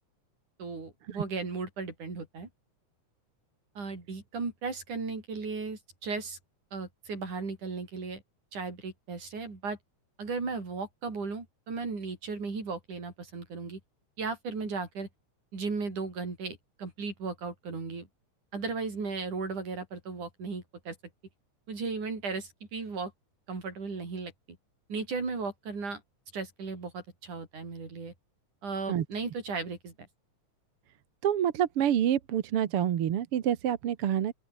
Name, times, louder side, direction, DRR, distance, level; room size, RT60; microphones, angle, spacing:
voice 1, 0.6-2.5 3.8-6.4 6.7-8.2 8.5-9.8 10.2-13.8 14.2-15.1 15.5-18.1 18.5-21.0 21.7-23.1 23.5-24.3 24.9-26.0 26.3-28.1 28.6-29.9, right 4 dB, 90° right, 7.7 m, -36 dB
voice 2, 31.2-34.3, right 10 dB, 55° right, 1.9 m, -27 dB
open air
omnidirectional pair, 3.4 m